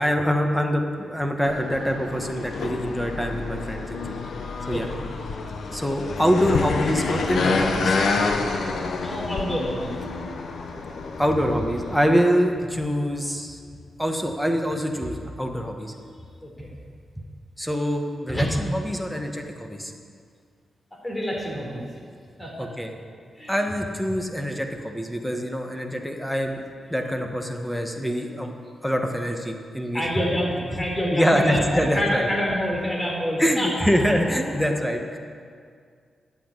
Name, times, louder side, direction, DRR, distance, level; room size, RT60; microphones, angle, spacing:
voice 1, 0.0-4.2 4.7-4.9 5.7-8.5 11.2-13.6 14.0-15.9 17.6-19.9 22.6-22.9 23.5-26.6 26.9-28.5 28.8-30.0 31.1-32.3 33.4-35.2, equal, 5° left, 3 dB, 1.6 m, -25 dB
sound 1, 1.4-12.1, left 4 dB, 75° left, 1.1 m, -28 dB
voice 2, 4.7-5.0 9.0-10.0 16.4-16.7 18.3-18.5 20.9-21.8 22.4-22.7 23.4-23.6 29.9-33.9, equal, 20° left, -2 dB, 4.1 m, -27 dB
11.5 x 8.6 x 8.4 m, 2.1 s
cardioid pair, 70°, 0 cm